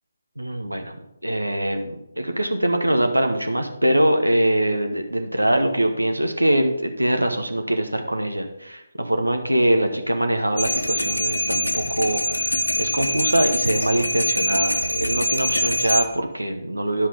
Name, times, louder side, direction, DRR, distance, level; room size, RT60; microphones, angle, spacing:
voice 1, 0.4-17.1, right 1 dB, 90° right, 5 dB, 1.1 m, -23 dB
sound 1, 10.6-16.1, left 1 dB, 85° left, 1.1 m, -24 dB
10.0 x 5.8 x 5.2 m, 0.85 s
figure-of-eight pair, 145°, 0 cm